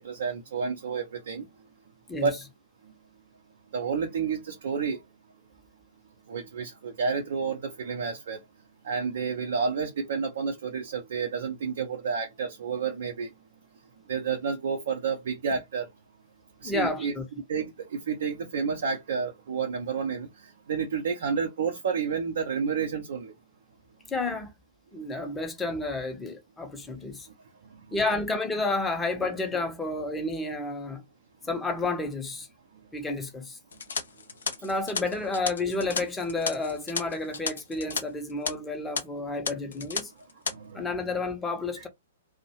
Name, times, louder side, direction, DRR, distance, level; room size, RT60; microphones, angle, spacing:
voice 1, 0.0-1.5 2.2-2.4 3.7-5.0 6.3-8.4 8.8-13.3 14.1-15.9 16.6-17.1 17.5-20.3 20.7-23.3 40.5-40.9 41.8-41.9, right 6 dB, 55° right, 0.6 m, -30 dB
voice 2, 16.6-17.2 24.1-24.5 24.9-27.3 27.9-31.0 31.5-32.5 32.9-33.6 34.6-40.1 40.7-41.9, left 3 dB, 10° left, 0.7 m, -31 dB
sound 1, 33.7-38.0 38.3-38.5 39.0-39.1 39.5-40.0 40.3-40.5, left 5 dB, 65° left, 0.5 m, -33 dB
2.6 x 2.1 x 2.8 m
figure-of-eight pair, 110°, 0 cm